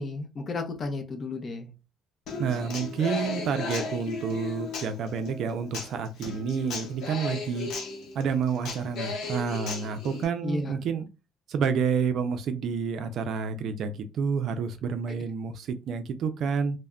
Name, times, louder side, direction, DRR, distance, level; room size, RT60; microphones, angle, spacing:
voice 1, 0.0-1.7 10.4-10.7 15.1-15.2, left 2 dB, 30° left, 4 dB, 0.6 m, -33 dB
Human voice / Acoustic guitar, 2.3-10.3, left 4 dB, 70° left, 0.7 m, -36 dB
voice 2, 2.4-7.7 8.1-11.1 11.5-16.8, right 6 dB, 60° right, 8 dB, 0.3 m, -29 dB
2.2 x 2.0 x 3.5 m, 0.28 s
cardioid pair, 130°, 0 cm